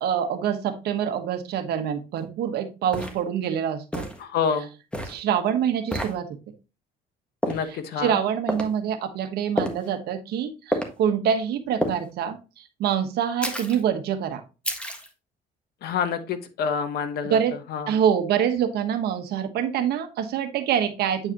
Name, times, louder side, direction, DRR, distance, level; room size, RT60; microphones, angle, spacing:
voice 1, 0.0-4.1 5.0-6.3 7.6-14.4 17.2-17.6 17.9-21.3, right 8 dB, 70° right, 8 dB, 1.2 m, -25 dB
sound 1, 2.2-2.3 2.9-3.2 3.9-4.2 4.9-5.2 5.9-6.1 7.4-7.7 8.5-8.7 9.6-9.9 10.7-10.9 11.8-12.0 13.4-13.8 14.6-15.1, equal, 5° left, 1.5 m, -28 dB
voice 2, 4.2-4.7 7.5-8.2 15.8-17.4 17.7-17.9, left 6 dB, 70° left, 10 dB, 1.1 m, -27 dB
8.8 x 4.8 x 2.9 m, 0.30 s
cardioid pair, 110°, 17 cm